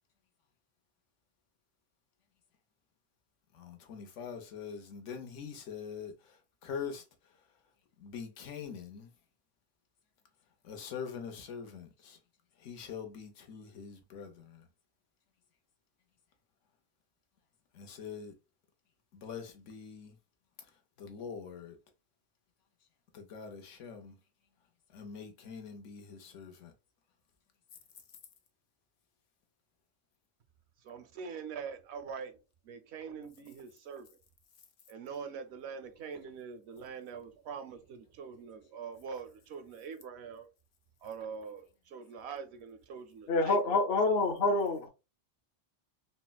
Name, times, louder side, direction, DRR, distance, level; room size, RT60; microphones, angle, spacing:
voice 1, 3.5-7.0 8.0-9.1 10.6-12.2 12.6-14.7 17.7-18.3 19.1-20.2 21.0-21.8 23.1-24.1 24.9-26.7, left 6 dB, 90° left, 1.1 m, -44 dB
voice 2, 30.8-32.4 32.7-34.1 34.9-40.5 41.0-43.8, right 6 dB, 70° right, 0.8 m, -43 dB
voice 3, 43.3-44.9, left 3 dB, 60° left, 1.0 m, -27 dB
4.2 x 2.0 x 2.2 m
omnidirectional pair, 1.2 m